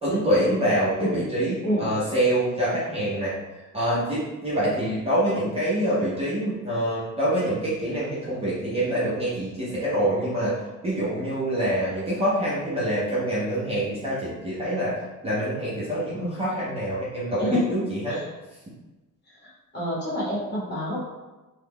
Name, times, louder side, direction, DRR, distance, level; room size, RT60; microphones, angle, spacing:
voice 1, 0.0-3.3 3.7-18.2, right 1 dB, 20° right, -9 dB, 0.6 m, -26 dB
voice 2, 19.4-21.1, equal, 30° left, -7 dB, 1.0 m, -28 dB
3.0 x 2.3 x 3.4 m, 1.1 s
cardioid pair, 180°, 33 cm